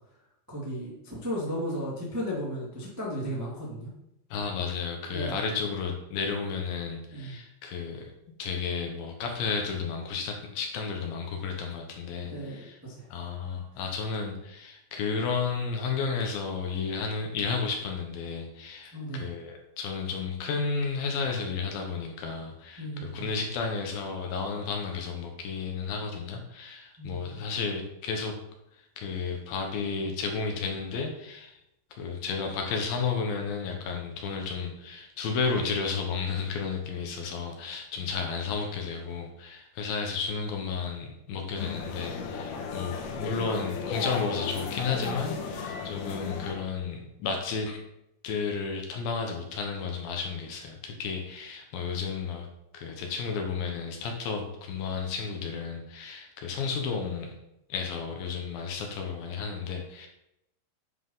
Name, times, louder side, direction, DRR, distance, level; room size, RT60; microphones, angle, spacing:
voice 1, 0.5-3.9 5.1-5.3 7.1-7.3 12.2-13.1 18.9-19.2 22.8-23.3 27.0-27.4 38.0-38.1, equal, 25° right, -5 dB, 0.3 m, -35 dB
voice 2, 4.3-8.1 8.4-12.8 13.1-28.4 29.0-31.6 32.0-47.8 48.2-52.5 52.7-57.4 57.7-60.1, left 5 dB, 70° left, 2 dB, 2.4 m, -32 dB
sound 1, 41.6-46.5, left 5 dB, 90° left, 3.4 m, -35 dB
9.6 x 5.7 x 3.9 m, 0.83 s
omnidirectional pair, 4.9 m